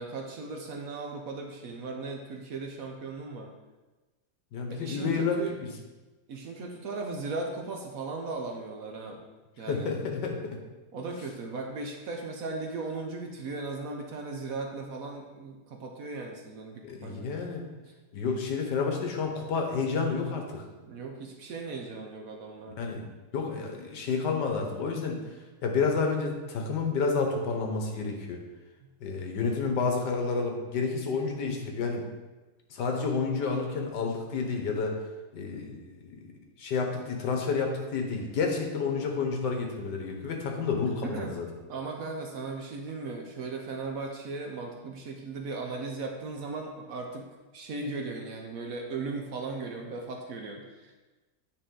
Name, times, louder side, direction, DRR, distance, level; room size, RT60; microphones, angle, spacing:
voice 1, 0.0-3.5 4.7-5.5 6.3-9.2 9.6-9.9 10.9-17.3 20.9-22.9 28.8-28.9 41.0-41.3 41.7-47.2 47.5-50.9, right 3 dB, 60° right, 2 dB, 1.1 m, -37 dB
voice 2, 4.5-5.7 9.7-10.6 16.8-17.7 18.1-20.7 22.8-23.0 23.3-25.2 25.6-28.4 29.0-32.0 32.7-35.0 35.3-36.3 36.6-41.5, left 4 dB, 75° left, 2 dB, 1.6 m, -30 dB
8.7 x 4.3 x 3.8 m, 1.2 s
omnidirectional pair, 1.9 m